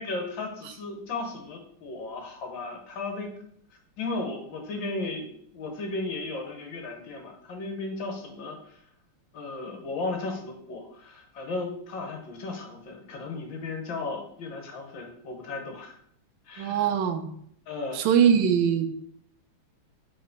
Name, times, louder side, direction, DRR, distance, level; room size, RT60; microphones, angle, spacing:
voice 1, 0.0-3.3 4.0-8.8 9.3-15.9 16.5-16.9 17.7-18.2, left 3 dB, 65° left, 2 dB, 1.7 m, -35 dB
voice 2, 16.6-17.3 17.9-18.9, right 8 dB, 70° right, 6 dB, 1.3 m, -22 dB
4.8 x 4.1 x 5.2 m, 0.67 s
omnidirectional pair, 2.4 m